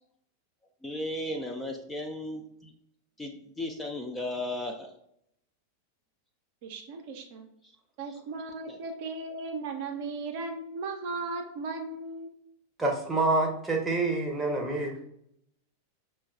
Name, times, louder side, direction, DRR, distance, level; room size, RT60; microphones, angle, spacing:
voice 1, 0.8-2.7 3.2-4.9 8.7-8.8, left 1 dB, 10° left, 3 dB, 0.4 m, -35 dB
voice 2, 6.6-7.5 8.0-12.3, right 3 dB, 50° right, 4 dB, 0.5 m, -36 dB
voice 3, 12.8-15.1, right 2 dB, 10° right, 0 dB, 0.7 m, -27 dB
5.8 x 2.2 x 2.2 m, 0.74 s
figure-of-eight pair, 90°, 0 cm